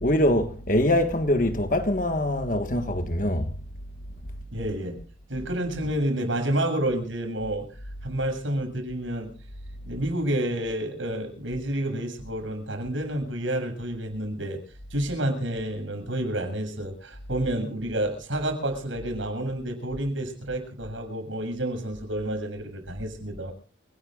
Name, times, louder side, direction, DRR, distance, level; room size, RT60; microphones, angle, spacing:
voice 1, 0.0-3.5, left 1 dB, 45° left, 1.5 m, -23 dB
voice 2, 4.5-5.0 5.3-7.7 8.0-9.3 9.9-14.6 14.9-23.5, right 1 dB, 85° right, 7.5 m, -29 dB
29.0 x 18.5 x 2.5 m
head